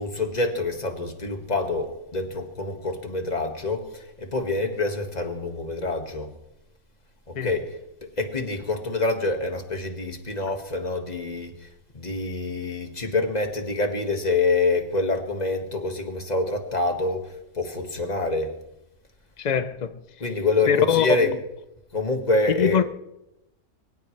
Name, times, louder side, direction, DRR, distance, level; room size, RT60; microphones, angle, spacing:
voice 1, 0.0-6.3 7.3-11.7 11.9-18.5 19.5-19.6 20.2-21.4 21.9-22.8, left 2 dB, 30° left, 1.9 m, -26 dB
voice 2, 19.4-20.0 20.7-21.3 22.5-22.8, left 7 dB, 65° left, 0.4 m, -23 dB
23.5 x 18.5 x 3.3 m
omnidirectional pair, 1.5 m